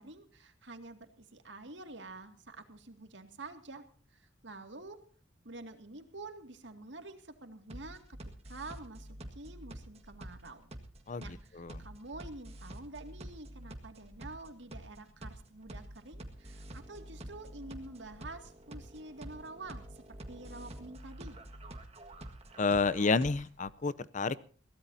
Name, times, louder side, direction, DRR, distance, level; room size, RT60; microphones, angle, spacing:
voice 1, 0.0-5.0 5.4-8.0 8.5-10.7 11.2-21.4, right 2 dB, 75° right, 7 dB, 2.3 m, -48 dB
sound 1, 7.7-23.7, right 1 dB, 35° right, 1.8 m, -48 dB
voice 2, 22.6-24.5, left 4 dB, 40° left, 16 dB, 0.6 m, -30 dB
22.0 x 17.0 x 2.8 m, 0.42 s
head